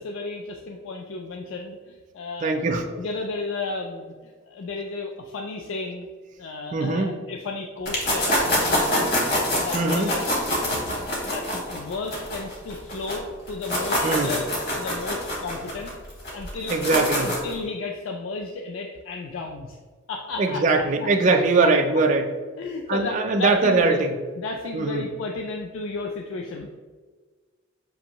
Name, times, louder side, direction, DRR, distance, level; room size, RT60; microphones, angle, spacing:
voice 1, 0.0-2.5 2.9-6.1 6.4-9.1 9.6-10.2 10.6-15.9 16.3-16.8 17.2-19.8 20.1-21.7 22.6-24.0 24.4-26.8, left 3 dB, 70° left, 1 dB, 0.4 m, -33 dB
voice 2, 2.4-2.8 6.7-7.1 9.7-10.1 14.0-14.3 16.7-17.3 20.4-22.2 22.9-24.1 24.7-25.0, right 3 dB, 40° right, 3 dB, 0.4 m, -21 dB
sound 1, 7.9-13.2 13.5-17.5, left 1 dB, 55° left, 1.2 m, -25 dB
6.3 x 2.6 x 2.9 m, 1.4 s
head